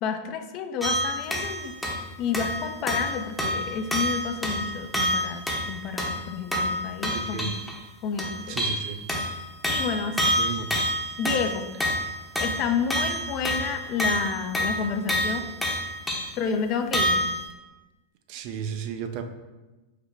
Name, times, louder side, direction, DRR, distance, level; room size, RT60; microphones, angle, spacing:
voice 1, 0.0-1.7 2.2-7.5 8.0-8.6 9.7-10.4 11.2-11.7 12.4-15.5 16.4-17.3, left 6 dB, 40° left, 7 dB, 0.4 m, -30 dB
sound 1, 0.8-2.1 2.3-7.8 8.2-16.4 16.9-17.5, equal, 5° left, 0.7 m, -28 dB
voice 2, 7.1-7.5 8.5-9.0 10.4-10.7 18.3-19.2, right 7 dB, 45° right, 6 dB, 0.4 m, -33 dB
4.9 x 2.1 x 4.6 m, 1.1 s
figure-of-eight pair, 90°, 0 cm